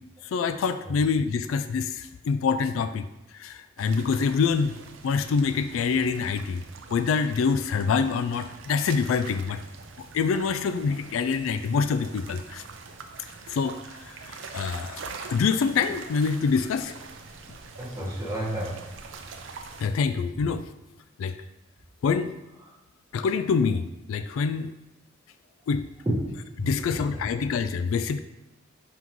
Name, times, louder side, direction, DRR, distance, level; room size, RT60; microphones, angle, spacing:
voice 1, 0.3-3.1 3.4-4.7 5.0-6.6 6.9-9.6 10.1-12.6 13.5-13.8 14.3-15.0 15.3-16.9 19.8-20.6 21.2-21.3 22.0-22.3 23.1-24.7 25.7-25.9 26.6-28.2, left 5 dB, 80° left, 11 dB, 0.3 m, -25 dB
sound 1, 3.8-19.9, right 4 dB, 70° right, 0.6 m, -44 dB
voice 2, 17.8-18.8 22.6-22.7 26.0-26.1 26.6-27.3, right 1 dB, 15° right, -7 dB, 1.5 m, -31 dB
5.8 x 5.3 x 3.1 m, 0.92 s
head